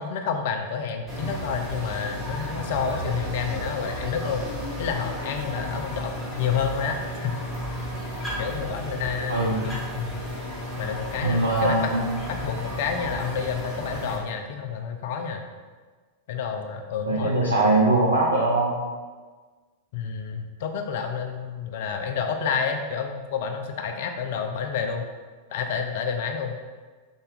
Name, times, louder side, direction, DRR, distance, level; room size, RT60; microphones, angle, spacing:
voice 1, 0.0-4.4 4.8-7.4 8.4-10.2 10.8-11.8 12.3-15.4 16.3-17.7 19.9-25.1 25.5-26.6, left 6 dB, 55° left, 5 dB, 0.3 m, -29 dB
sound 1, 1.1-14.2, equal, ahead, 1.0 m, -33 dB
voice 2, 9.3-9.6 11.2-12.1 17.1-18.8, right 2 dB, 75° right, -3 dB, 0.4 m, -21 dB
2.7 x 2.2 x 3.2 m, 1.4 s
figure-of-eight pair, 90°, 0 cm